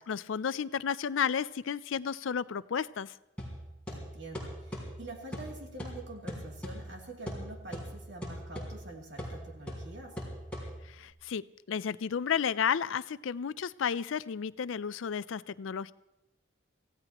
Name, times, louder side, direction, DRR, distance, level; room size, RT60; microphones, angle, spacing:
voice 1, 0.1-3.1 10.8-15.9, left 7 dB, 90° left, 17 dB, 0.4 m, -32 dB
sound 1, 3.4-11.1, equal, 5° left, 3.9 m, -42 dB
voice 2, 3.9-10.2, right 2 dB, 65° right, 0 dB, 2.8 m, -46 dB
26.0 x 16.0 x 3.0 m, 0.91 s
head